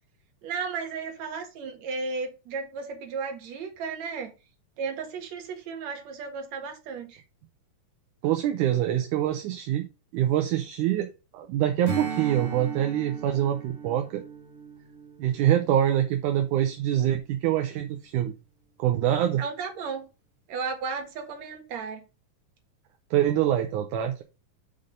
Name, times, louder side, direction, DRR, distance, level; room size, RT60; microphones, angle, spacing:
voice 1, 0.4-4.3 4.8-7.2 19.4-20.1 20.5-22.0, right 5 dB, 55° right, 2.6 m, -34 dB
voice 2, 8.2-9.9 10.1-14.2 15.2-18.3 18.8-19.4 23.1-24.2, right 11 dB, 75° right, 2.1 m, -25 dB
Strum, 11.8-16.6, right 6 dB, 30° right, 1.6 m, -37 dB
5.8 x 5.2 x 5.2 m
omnidirectional pair, 4.0 m